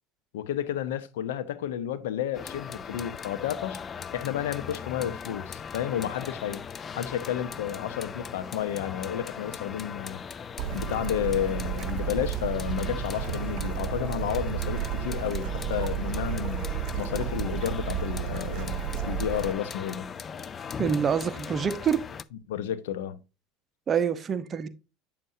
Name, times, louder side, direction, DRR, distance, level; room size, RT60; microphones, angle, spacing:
voice 1, 0.3-3.8 4.1-6.6 6.9-10.3 10.7-16.7 17.0-20.1 22.5-23.2, left 10 dB, 85° left, 0.8 m, -31 dB
sound 1, 2.3-22.2, left 6 dB, 30° left, 0.4 m, -39 dB
Bird / Stream, 10.6-19.5, right 11 dB, 60° right, 0.9 m, -32 dB
voice 2, 20.8-22.0 23.9-24.7, right 7 dB, 35° right, 0.9 m, -26 dB
8.8 x 6.6 x 2.7 m
supercardioid pair, 100°, 0 cm